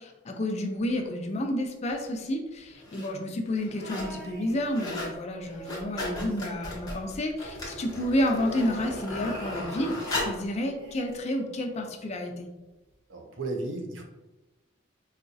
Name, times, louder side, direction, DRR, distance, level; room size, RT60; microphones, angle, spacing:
voice 1, 0.0-12.5, left 1 dB, 35° left, 4 dB, 0.4 m, -30 dB
sound 1, 1.9-2.0 2.7-3.1 3.5-4.2 4.5-5.2 5.5-10.5 11.1-11.2, left 1 dB, 20° left, 0.9 m, -36 dB
sound 2, 3.8-5.1 5.4-7.3 7.6-7.7 8.0-10.3 10.8-12.0 12.9-13.0, right 1 dB, 60° right, 1.2 m, -46 dB
voice 2, 13.1-14.0, right 2 dB, 85° right, 2 dB, 0.6 m, -34 dB
4.1 x 2.3 x 2.6 m, 1.1 s
head